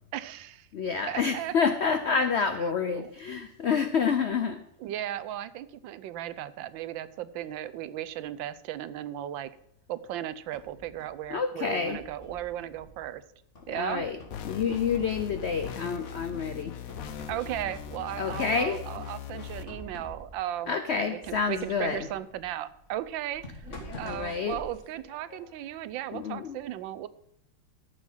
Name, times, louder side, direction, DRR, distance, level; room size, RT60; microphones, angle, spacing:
voice 1, 0.1-0.7 1.1-1.5 2.9-3.1 4.8-9.5 9.9-13.2 13.7-14.1 17.3-23.7 24.0-27.1, right 12 dB, 80° right, 15 dB, 1.4 m, -36 dB
voice 2, 0.7-4.6 11.3-12.0 13.7-14.2 14.4-16.7 18.2-18.8 20.7-22.0 23.9-24.6 26.1-26.6, left 5 dB, 90° left, 9 dB, 0.5 m, -28 dB
sound 1, 10.0-11.3 11.8-13.1 13.6-15.7 16.0-16.6 16.9-18.8 19.4-20.5 21.2-25.7, left 1 dB, 40° left, 2.6 m, -47 dB
sound 2, 14.3-19.6, left 9 dB, 60° left, 1.0 m, -40 dB
13.5 x 7.0 x 5.6 m, 0.74 s
omnidirectional pair, 2.1 m